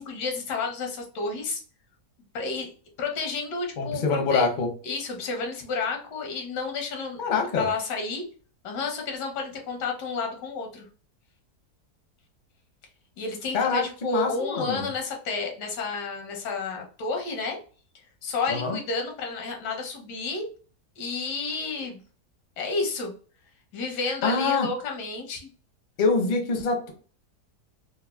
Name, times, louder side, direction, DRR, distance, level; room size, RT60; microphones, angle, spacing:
voice 1, 0.0-1.6 2.3-2.7 3.0-4.5 4.8-7.2 7.6-8.2 8.6-10.9 13.2-17.6 18.2-20.5 21.0-22.0 22.6-23.1 23.7-25.5, left 4 dB, 90° left, 2 dB, 1.4 m, -31 dB
voice 2, 3.8-4.7 7.2-7.7 13.5-14.9 18.5-18.8 24.2-24.7 26.0-26.9, left 4 dB, 50° left, 3 dB, 0.5 m, -25 dB
3.9 x 2.2 x 2.3 m, 0.40 s
omnidirectional pair, 1.7 m